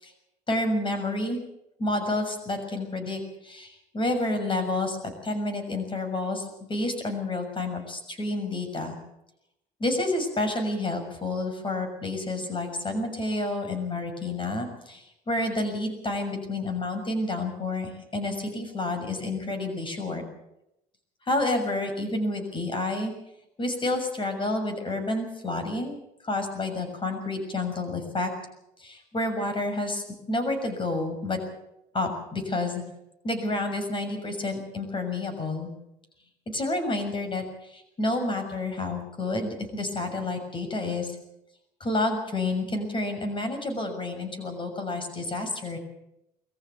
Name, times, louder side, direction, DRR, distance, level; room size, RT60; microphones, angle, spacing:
voice 1, 0.5-1.4 1.8-9.0 9.8-20.2 21.3-23.1 23.6-26.0 26.2-28.3 28.8-31.4 31.9-32.8 33.2-35.7 36.5-41.2 41.8-45.8, left 2 dB, 30° left, 6 dB, 6.7 m, -29 dB
22.5 x 14.5 x 8.5 m, 0.84 s
cardioid pair, 110°, 17 cm